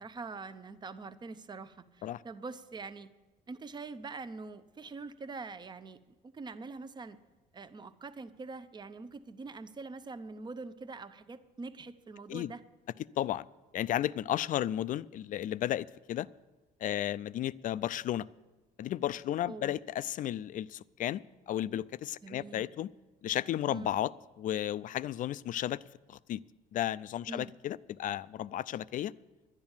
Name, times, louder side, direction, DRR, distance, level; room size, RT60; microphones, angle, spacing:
voice 1, 0.0-3.1 3.5-7.2 7.5-12.6 19.5-19.8 22.2-22.7 23.7-23.9 27.3-27.5, right 4 dB, 25° right, 13 dB, 0.7 m, -44 dB
voice 2, 13.7-16.3 16.8-18.3 18.8-21.2 21.5-22.9 23.2-24.1 24.4-25.8 26.1-26.4 26.7-29.1, left 12 dB, 50° left, 18 dB, 0.4 m, -33 dB
10.5 x 10.5 x 7.3 m, 1.2 s
cardioid pair, 110°, 17 cm